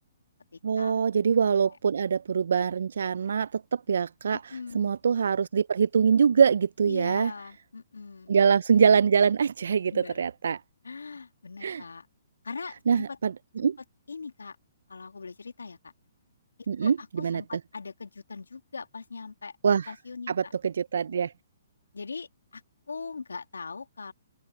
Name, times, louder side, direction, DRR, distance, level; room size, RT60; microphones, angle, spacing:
voice 1, 0.6-7.3 8.3-10.6 11.6-11.8 12.9-13.7 16.7-17.4 19.6-19.9 20.3-21.3, right 6 dB, 70° right, 0.4 m, -24 dB
voice 2, 1.4-1.7 4.3-4.9 6.9-8.3 9.9-10.2 10.8-12.1 12.4-13.2 13.6-13.7 14.1-14.6 14.9-15.9 16.8-19.5 19.9-20.5 21.9-22.6 22.9-24.1, left 4 dB, 85° left, 2.1 m, -40 dB
open air
hypercardioid pair, 130°, 0 cm